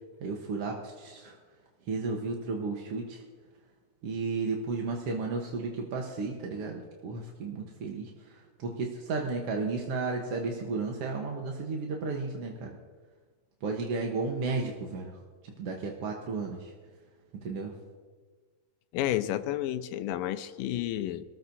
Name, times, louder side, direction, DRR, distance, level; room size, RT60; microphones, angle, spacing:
voice 1, 0.2-1.4 1.9-3.2 4.0-12.8 13.6-15.2 15.6-16.7 17.4-17.7, right 3 dB, 60° right, 1 dB, 1.8 m, -33 dB
voice 2, 18.9-21.2, left 13 dB, 85° left, 10 dB, 2.4 m, -31 dB
25.5 x 13.5 x 2.7 m, 1.4 s
omnidirectional pair, 3.8 m